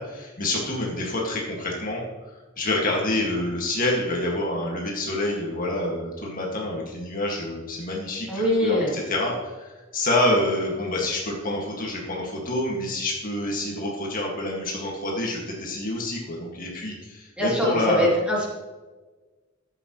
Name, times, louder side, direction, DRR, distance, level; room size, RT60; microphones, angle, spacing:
voice 1, 0.0-2.0 2.6-18.1, left 1 dB, 45° left, -2 dB, 2.0 m, -27 dB
voice 2, 8.3-8.9 17.4-18.5, left 1 dB, 5° right, -6 dB, 2.9 m, -23 dB
12.5 x 8.4 x 3.1 m, 1.3 s
head